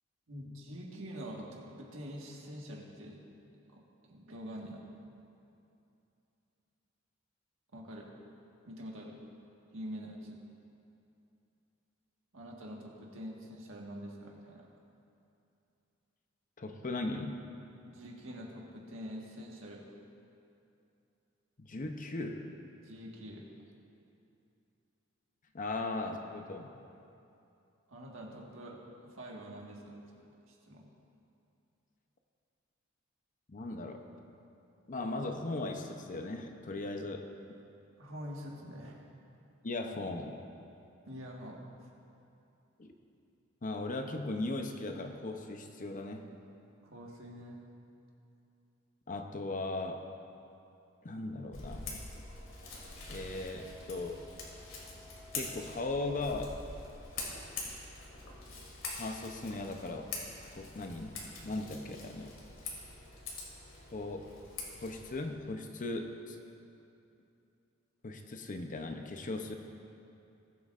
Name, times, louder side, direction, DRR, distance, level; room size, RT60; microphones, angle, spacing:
voice 1, 0.3-3.2 3.7-4.8 7.7-8.1 8.7-9.2 9.7-10.4 12.3-14.7 17.9-19.8 22.8-23.5 27.9-30.9 38.0-39.0 41.1-41.8 46.8-47.6, equal, 80° right, -1 dB, 1.6 m, -45 dB
voice 2, 16.6-17.4 21.6-22.6 25.5-26.7 33.5-34.1 34.9-37.3 39.6-40.4 42.8-42.9 43.6-46.3 49.1-50.1 51.0-52.1 53.1-54.2 55.3-56.6 59.0-60.1 60.6-61.1 61.4-62.3 63.9-64.3 64.8-66.4 68.0-69.5, left 2 dB, 40° left, 5 dB, 0.7 m, -38 dB
Scissors, 51.5-65.2, left 3 dB, 75° left, 2.1 m, -45 dB
20.0 x 7.7 x 2.5 m, 2.7 s
head